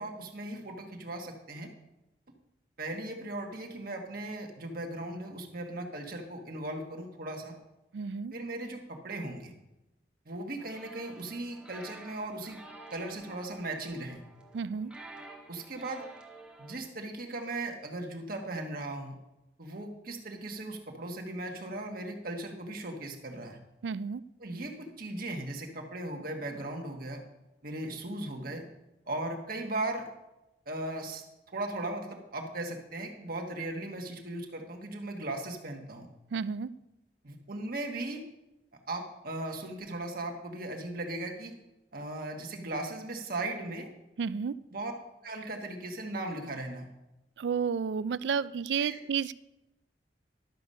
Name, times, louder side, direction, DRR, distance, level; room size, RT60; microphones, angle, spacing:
voice 1, 0.0-1.7 2.8-7.5 8.3-9.5 10.2-12.6 12.9-14.2 15.5-16.0 16.6-19.1 19.6-23.6 24.4-27.2 27.6-28.6 29.1-30.1 30.7-36.1 37.2-38.3 38.9-41.5 41.9-43.9 44.7-44.9 45.2-46.9 48.8-49.0, right 2 dB, 55° right, 2 dB, 1.4 m, -37 dB
voice 2, 7.9-8.3 14.5-14.9 23.8-24.2 36.3-36.7 44.2-44.6 47.4-49.3, right 6 dB, 70° right, 18 dB, 0.4 m, -31 dB
sound 1, 10.6-16.8, right 2 dB, 5° right, 1.3 m, -50 dB
12.0 x 6.8 x 5.4 m, 0.95 s
head